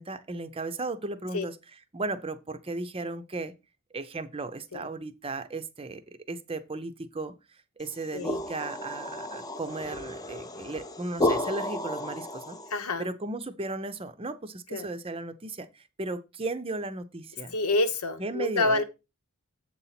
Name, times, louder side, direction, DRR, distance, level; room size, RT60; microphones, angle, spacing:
voice 1, 0.0-1.6 1.9-3.5 3.9-6.0 6.3-7.3 7.8-12.6 13.0-17.5 18.2-18.8, right 2 dB, 25° right, 0.6 m, -35 dB
sound 1, 7.9-12.8, left 1 dB, 15° left, 0.6 m, -32 dB
voice 2, 12.7-13.1 14.7-14.9 17.5-18.8, left 2 dB, 90° left, 1.1 m, -27 dB
7.7 x 4.0 x 5.8 m
head